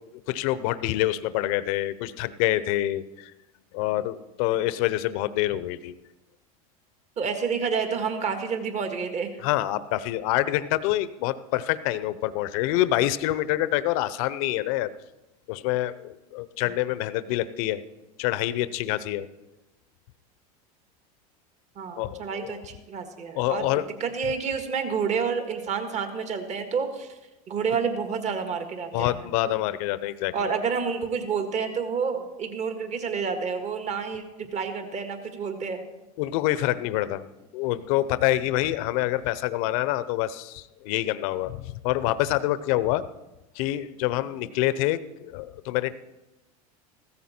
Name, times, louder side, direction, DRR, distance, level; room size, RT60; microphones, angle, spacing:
voice 1, 0.3-3.3 3.7-6.0 9.4-14.9 15.5-17.8 18.2-19.3 22.0-22.6 23.4-24.0 24.2-24.3 28.9-30.5 36.2-37.3 37.5-43.0 43.6-46.0, left 15 dB, 65° left, 15 dB, 0.7 m, -26 dB
voice 2, 7.2-9.3 21.8-27.1 27.5-29.3 30.3-35.8, right 6 dB, 35° right, 6 dB, 1.9 m, -29 dB
15.5 x 14.0 x 4.4 m, 1.0 s
hypercardioid pair, 105°, 19 cm